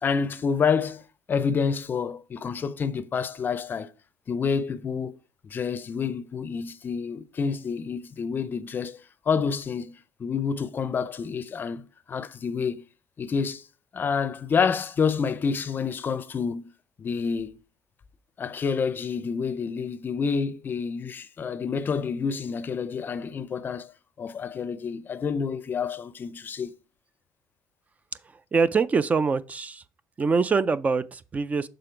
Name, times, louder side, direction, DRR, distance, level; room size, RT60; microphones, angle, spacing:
voice 1, 0.0-1.0 1.3-3.9 4.3-5.2 5.4-9.9 10.2-12.8 13.2-13.7 13.9-16.7 17.0-17.6 18.4-23.9 24.2-26.7, left 6 dB, 35° left, 0.5 m, -28 dB
voice 2, 28.5-29.8 30.2-31.7, right 4 dB, 25° right, 0.4 m, -24 dB
6.8 x 3.8 x 4.4 m
cardioid pair, 115°, 6 cm